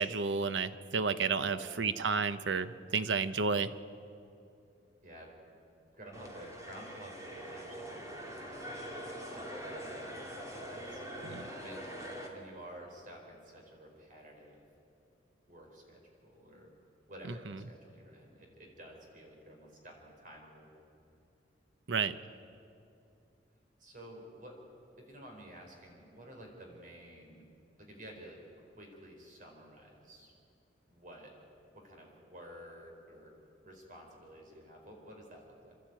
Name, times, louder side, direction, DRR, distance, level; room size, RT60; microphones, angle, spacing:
voice 1, 0.0-3.7 11.2-11.5 21.9-22.1, right 5 dB, 80° right, 12 dB, 0.8 m, -31 dB
voice 2, 1.4-1.7 5.0-5.3 6.0-8.9 9.3-11.0 11.6-12.0 12.3-14.6 15.5-16.7 17.1-20.7 23.8-24.6 25.0-27.5 27.8-30.3 30.9-31.3 31.7-33.3 33.6-35.7, right 1 dB, 45° right, 1 dB, 4.5 m, -52 dB
sound 1, 6.1-12.3, equal, 20° right, 2.6 m, -43 dB
28.5 x 12.5 x 9.0 m, 2.7 s
head